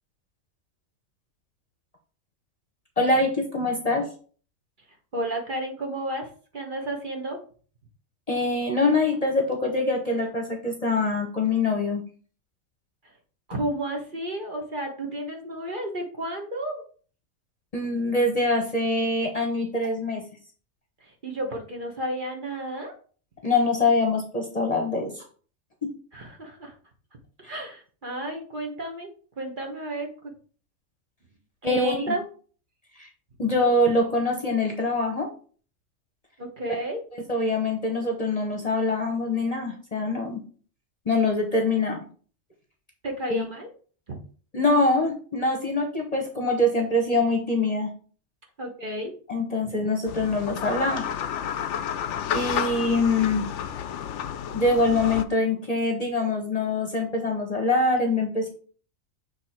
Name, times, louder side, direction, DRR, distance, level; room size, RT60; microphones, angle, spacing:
voice 1, 3.0-4.0 8.3-12.0 17.7-20.2 23.4-25.2 31.6-31.9 33.0-33.1 33.4-35.3 37.3-40.4 41.1-42.0 43.3-43.4 44.5-47.9 49.3-51.0 52.3-53.5 54.5-58.5, left 2 dB, 30° left, 2 dB, 1.0 m, -24 dB
voice 2, 5.1-6.3 6.5-7.4 13.5-16.8 21.0-22.9 26.1-26.7 27.4-29.1 29.4-30.3 31.6-32.3 36.4-37.0 43.0-43.7 44.1-44.2 48.6-49.1, right 1 dB, 40° right, 1 dB, 1.2 m, -31 dB
sound 1, 50.1-55.2, left 9 dB, 70° left, 0.8 m, -31 dB
6.6 x 3.3 x 4.3 m, 0.42 s
omnidirectional pair, 1.4 m